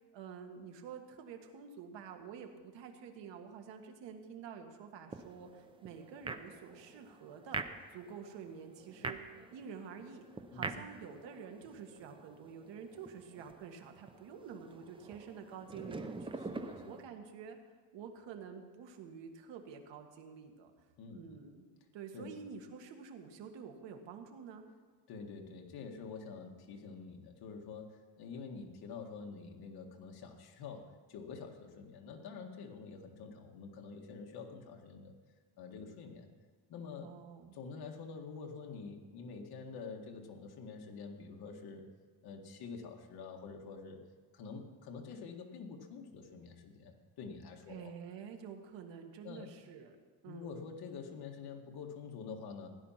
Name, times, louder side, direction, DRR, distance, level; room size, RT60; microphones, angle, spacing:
voice 1, 0.1-7.6 7.9-9.2 9.5-10.2 10.5-16.3 16.9-17.6 17.9-20.7 21.1-24.7 37.0-37.6 47.7-50.0 50.2-50.5, right 6 dB, 75° right, 4 dB, 1.9 m, -49 dB
sound 1, 5.1-17.0, right 3 dB, 10° right, 0.6 m, -46 dB
voice 2, 10.5-10.9 16.4-16.9 21.0-21.2 22.1-22.3 25.1-35.1 35.6-36.3 36.7-37.1 37.5-41.9 42.2-44.0 44.3-47.9 49.2-49.5 50.2-52.7, left 5 dB, 55° left, 1 dB, 2.0 m, -47 dB
17.0 x 10.5 x 5.8 m, 1.5 s
cardioid pair, 155°, 44 cm